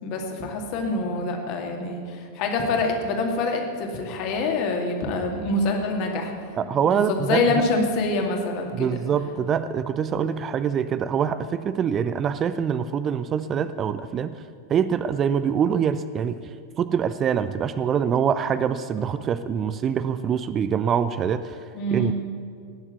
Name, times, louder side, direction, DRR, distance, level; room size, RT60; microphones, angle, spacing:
voice 1, 0.0-6.6 6.9-9.0 21.7-22.2, left 2 dB, 40° left, 2 dB, 2.3 m, -26 dB
voice 2, 6.6-7.5 8.7-14.4 14.7-16.4 16.8-21.6 21.9-22.2, right 7 dB, 25° right, 13 dB, 0.5 m, -24 dB
19.0 x 7.2 x 8.1 m, 2.3 s
figure-of-eight pair, 90°, 0 cm